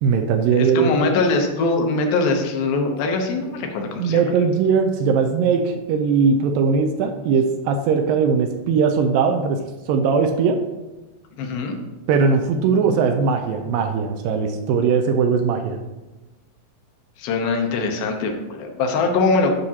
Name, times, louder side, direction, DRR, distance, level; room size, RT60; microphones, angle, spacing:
voice 1, 0.0-0.9 4.0-10.6 12.1-15.8, right 5 dB, 80° right, 5 dB, 2.1 m, -19 dB
voice 2, 0.5-4.2 11.4-11.8 17.2-19.6, left 3 dB, 80° left, 3 dB, 2.6 m, -22 dB
9.5 x 5.9 x 2.8 m, 1.1 s
omnidirectional pair, 4.3 m